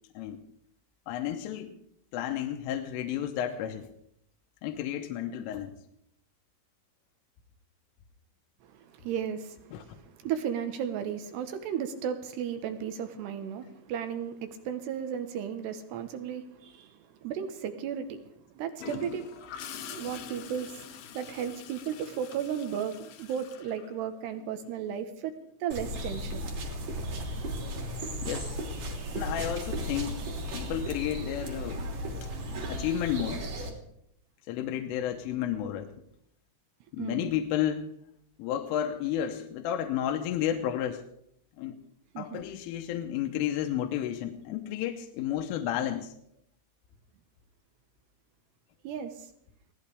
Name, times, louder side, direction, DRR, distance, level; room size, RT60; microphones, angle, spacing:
voice 1, 1.1-1.7 2.1-3.9 4.6-5.8 9.7-9.8 28.2-28.6 29.1-30.2 30.5-31.9 32.7-33.4 34.5-35.9 36.9-37.9 38.4-41.0 41.6-41.7 42.2-46.1, left 10 dB, 85° left, 4 dB, 3.4 m, -32 dB
voice 2, 8.7-18.2 18.5-19.3 19.9-25.3 25.6-26.4 29.0-29.1 30.5-30.7 37.0-37.3 42.1-42.4 48.8-49.3, right 8 dB, 75° right, 8 dB, 2.7 m, -35 dB
Gurgling / Toilet flush, 18.8-24.5 26.5-26.8, left 8 dB, 70° left, 2.4 m, -44 dB
sound 1, 25.7-33.7, equal, 45° right, 3.8 m, -35 dB
23.5 x 17.5 x 3.4 m, 0.73 s
omnidirectional pair, 5.8 m